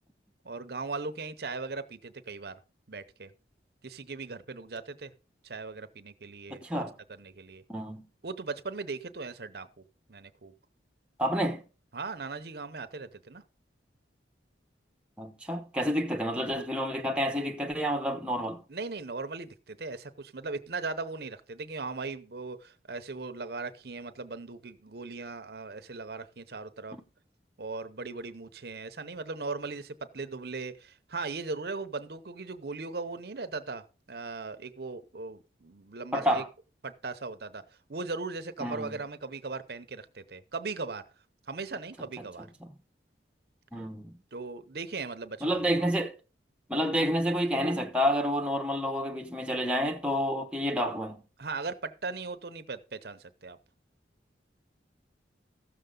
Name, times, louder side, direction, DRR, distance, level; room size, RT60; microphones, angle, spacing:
voice 1, 0.4-2.6 2.9-3.3 3.8-5.1 5.4-6.8 7.1-7.6 8.2-9.7 10.1-10.5 11.9-13.4 18.7-27.0 27.6-36.4 36.8-37.6 37.9-41.0 41.5-42.5 44.3-45.8 51.4-53.6, right 3 dB, 55° right, 0.7 m, -38 dB
voice 2, 6.6-6.9 7.7-8.1 11.2-11.6 15.2-18.6 26.9-27.0 36.1-36.5 38.6-39.0 42.6-42.7 43.7-44.2 45.4-46.1 46.7-51.2, equal, 5° right, 0.8 m, -29 dB
15.5 x 6.7 x 3.8 m
head